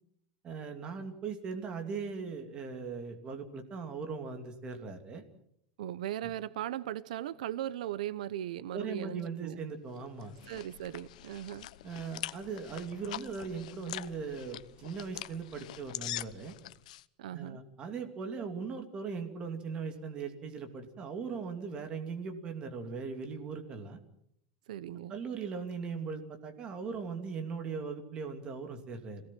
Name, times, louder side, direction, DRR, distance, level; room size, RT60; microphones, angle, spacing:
voice 1, 0.4-5.2 6.2-6.3 8.7-10.3 11.8-16.6 17.3-24.0 25.1-29.2, right 5 dB, 25° right, 2.7 m, -39 dB
voice 2, 5.8-9.6 10.5-11.7 17.2-17.6 24.7-25.1, right 12 dB, 90° right, 0.9 m, -38 dB
sound 1, 9.9-17.0, left 15 dB, 75° left, 0.9 m, -44 dB
26.5 x 18.0 x 7.6 m
supercardioid pair, 170°, 4 cm